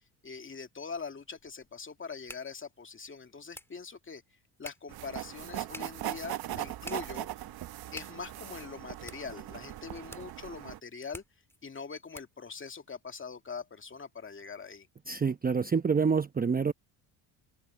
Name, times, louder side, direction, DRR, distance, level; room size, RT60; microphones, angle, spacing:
voice 1, 0.2-4.2 4.6-7.3 7.9-11.2 11.6-14.9, left 5 dB, 25° left, 2.3 m, -42 dB
sound 1, 0.9-12.5, left 1 dB, 5° left, 2.4 m, -53 dB
sound 2, 4.9-10.8, right 14 dB, 50° right, 0.9 m, -40 dB
voice 2, 15.1-16.7, right 5 dB, 20° right, 0.8 m, -27 dB
cardioid pair, 105°, 48 cm